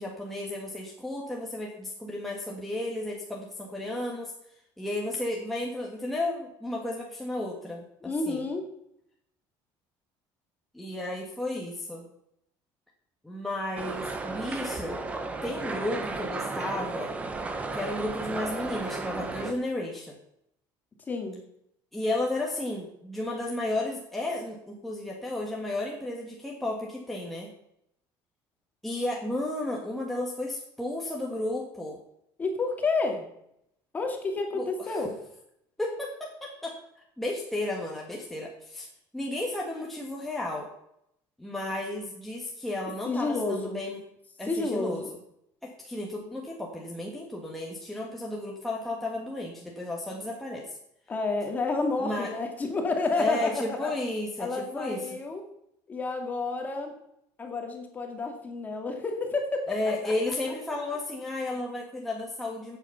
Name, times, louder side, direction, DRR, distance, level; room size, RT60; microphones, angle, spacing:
voice 1, 0.0-4.3 4.8-7.8 8.3-8.4 10.7-12.1 13.2-15.0 15.4-17.1 17.7-20.2 21.9-27.5 28.8-32.0 34.5-35.0 35.8-38.9 39.1-40.7 41.4-44.0 44.4-45.0 45.6-50.8 52.0-52.3 53.2-55.0 59.7-62.8, left 1 dB, ahead, -2 dB, 1.6 m, -33 dB
voice 2, 8.0-8.6 21.1-21.4 32.4-33.2 33.9-35.2 43.1-43.8 44.5-45.1 51.1-53.9 54.4-55.4 55.9-56.9 57.4-59.8 60.0-60.1, left 3 dB, 20° left, 3 dB, 2.2 m, -30 dB
sound 1, 13.8-19.5, right 3 dB, 15° right, 1.2 m, -34 dB
15.0 x 8.2 x 5.8 m, 0.77 s
cardioid pair, 175°, 9 cm